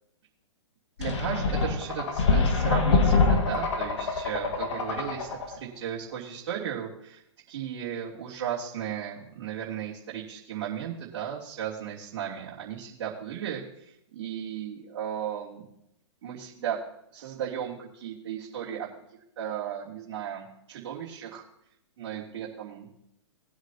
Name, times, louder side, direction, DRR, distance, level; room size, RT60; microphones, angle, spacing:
sound 1, 1.0-5.6, left 4 dB, 70° left, 1.9 m, -25 dB
voice 1, 1.0-7.2 7.5-15.6 16.2-16.8 17.1-18.9 19.4-21.4 22.0-22.9, right 9 dB, 50° right, -7 dB, 3.0 m, -35 dB
20.5 x 8.0 x 2.9 m, 0.77 s
hypercardioid pair, 130°, 16 cm